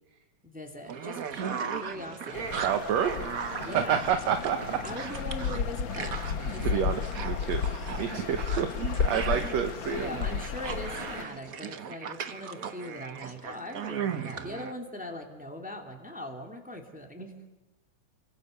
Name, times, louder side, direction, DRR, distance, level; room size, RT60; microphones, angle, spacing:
voice 1, 0.4-2.6 3.6-4.0 4.8-6.8 7.4-7.6 9.1-17.3, left 1 dB, 5° right, 2 dB, 2.7 m, -41 dB
sound 1, 0.9-14.7, right 7 dB, 90° right, 0.7 m, -37 dB
sound 2, 2.3-11.2, left 7 dB, 60° left, 1.3 m, -33 dB
voice 2, 2.5-4.8 5.1-5.2 6.6-8.7 9.0-10.1, right 9 dB, 70° right, 7 dB, 2.3 m, -29 dB
30.0 x 24.5 x 6.8 m, 1.0 s
omnidirectional pair, 3.3 m